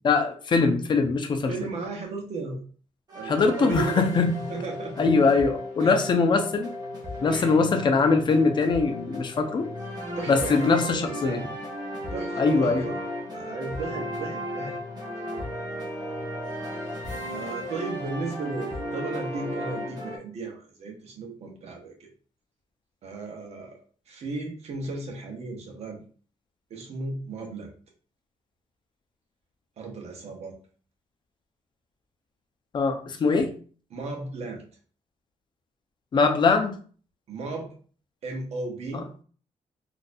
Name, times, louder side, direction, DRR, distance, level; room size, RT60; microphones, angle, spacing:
voice 1, 0.0-1.5 3.3-4.3 5.0-6.7 7.2-9.7 10.3-11.4 12.4-12.9 32.7-33.5 36.1-36.8 38.9-39.0, left 4 dB, 40° left, 6 dB, 0.6 m, -22 dB
voice 2, 1.5-2.6 3.1-4.1 4.5-5.0 5.8-6.1 7.3-7.6 10.2-11.5 12.1-13.0 13.3-14.8 17.3-22.1 23.0-23.8 24.1-26.0 26.7-27.7 29.8-30.6 33.9-34.6 37.3-37.7 38.2-39.1, right 3 dB, 60° right, 2 dB, 1.0 m, -35 dB
sound 1, 3.1-20.2, equal, 35° right, 1.2 m, -35 dB
4.0 x 2.5 x 2.6 m, 0.43 s
cardioid pair, 130°, 12 cm